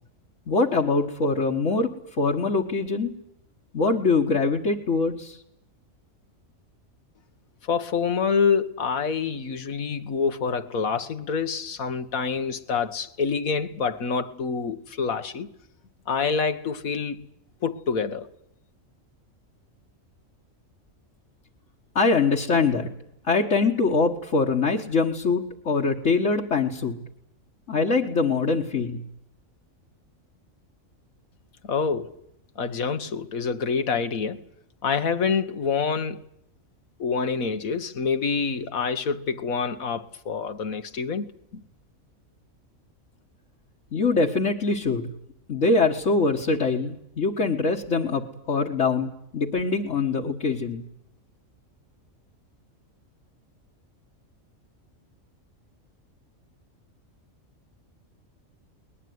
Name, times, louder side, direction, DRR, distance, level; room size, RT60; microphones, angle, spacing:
voice 1, 0.5-3.2 3.7-5.4 22.0-22.9 23.3-27.0 27.7-29.0 43.9-45.1 45.5-50.8, left 4 dB, 60° left, 1.8 m, -23 dB
voice 2, 7.6-15.5 16.1-17.3 17.6-18.3 31.6-32.2 32.6-34.4 34.8-36.2 37.0-41.6, left 5 dB, 80° left, 1.7 m, -27 dB
21.5 x 20.0 x 9.5 m
omnidirectional pair, 1.4 m